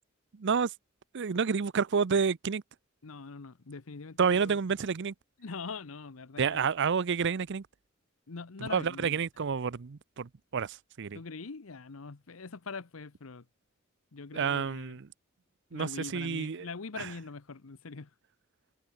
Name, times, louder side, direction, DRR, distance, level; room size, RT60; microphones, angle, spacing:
voice 1, 0.3-0.7 1.1-2.6 4.2-5.1 6.4-7.7 8.6-11.2 14.3-15.1 15.7-16.7 17.0-17.1, right 6 dB, 60° right, 0.6 m, -29 dB
voice 2, 3.0-4.6 5.4-6.6 8.3-9.2 11.1-13.4 14.1-14.9 15.7-18.1, left 4 dB, 75° left, 0.9 m, -43 dB
head